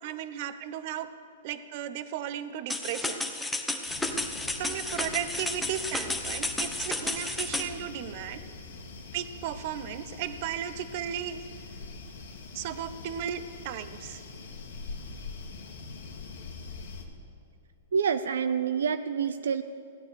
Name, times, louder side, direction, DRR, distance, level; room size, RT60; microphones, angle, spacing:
voice 1, 0.0-1.1 1.4-3.2 4.5-8.4 9.1-11.4 12.5-14.2, right 9 dB, 50° right, 12 dB, 0.9 m, -35 dB
sound 1, 2.7-7.7, left 2 dB, 5° left, 1.0 m, -32 dB
sound 2, 3.9-17.1, left 4 dB, 80° left, 1.9 m, -43 dB
voice 2, 17.9-19.6, right 6 dB, 85° right, 10 dB, 0.5 m, -27 dB
16.5 x 9.8 x 6.9 m, 2.8 s
hypercardioid pair, 135°, 0 cm